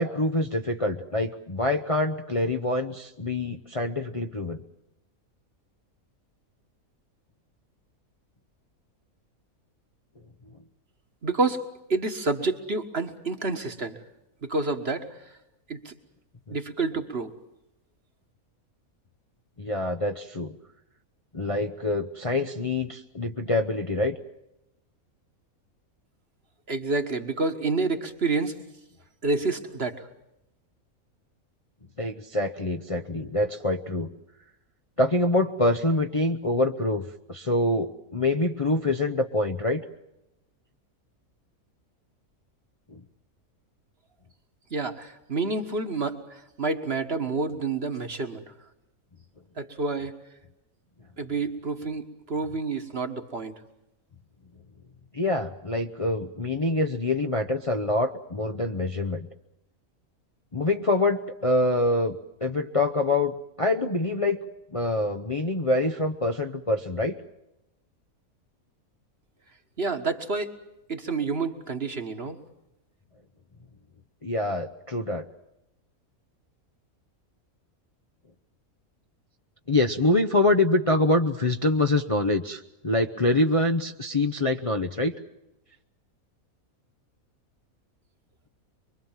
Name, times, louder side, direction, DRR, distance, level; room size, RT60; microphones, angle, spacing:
voice 1, 0.0-4.6 16.5-16.6 19.6-20.6 21.3-24.2 32.0-34.1 35.0-39.8 42.9-43.0 55.1-59.3 60.5-62.2 62.4-64.4 64.7-67.2 74.2-75.2 79.7-85.1, left 2 dB, 30° left, 3 dB, 0.8 m, -25 dB
voice 2, 11.2-11.6 11.9-14.0 14.4-15.4 15.7-15.9 16.5-17.3 26.7-28.6 29.2-30.1 44.7-48.5 49.6-50.2 51.2-53.5 69.8-70.5 70.9-72.4, right 3 dB, 45° right, 7 dB, 1.8 m, -29 dB
24.5 x 23.5 x 7.4 m, 0.88 s
omnidirectional pair, 1.5 m